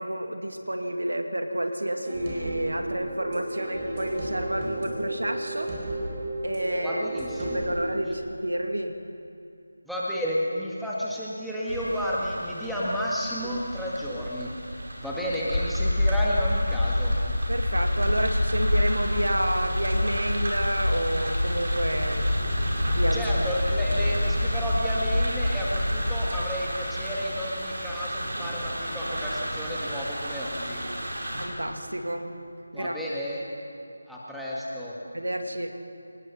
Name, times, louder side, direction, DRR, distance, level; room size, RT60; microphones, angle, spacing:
voice 1, 0.0-5.7 6.4-7.0 7.4-8.9 17.5-22.3 22.8-23.3 31.4-32.3 32.7-33.0 35.1-35.7, right 1 dB, 70° right, 5 dB, 2.3 m, -29 dB
sound 1, 2.0-7.8, right 1 dB, 20° right, 4.4 m, -33 dB
voice 2, 6.8-7.7 8.0-8.2 9.9-14.5 15.0-17.2 23.1-30.9 32.7-33.5 34.1-35.0, equal, ahead, -8 dB, 1.9 m, -31 dB
sound 2, 11.7-31.5, right 1 dB, 50° right, 5.0 m, -34 dB
sound 3, 15.5-26.4, left 1 dB, 60° left, 4.0 m, -27 dB
26.5 x 19.0 x 5.9 m, 2.6 s
figure-of-eight pair, 160°, 0 cm